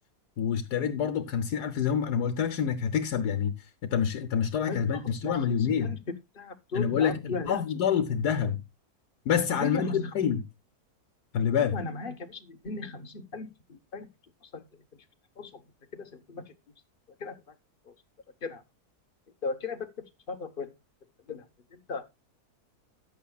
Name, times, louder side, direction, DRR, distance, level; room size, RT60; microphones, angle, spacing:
voice 1, 0.4-3.5 3.9-6.0 6.7-8.6 9.3-10.4 11.3-11.8, left 8 dB, 80° left, 1.4 m, -27 dB
voice 2, 4.7-5.5 5.8-6.0 6.3-7.6 9.5-10.1 11.4-14.1 14.5-14.6 14.9-15.0 15.4-15.6 15.9-16.5 17.2-17.4 17.9-18.0 18.4-18.6 19.4-19.9 20.3-20.7 21.3-21.5 21.7-22.1, left 4 dB, 35° left, 1.2 m, -37 dB
14.0 x 9.9 x 2.3 m
omnidirectional pair, 1.7 m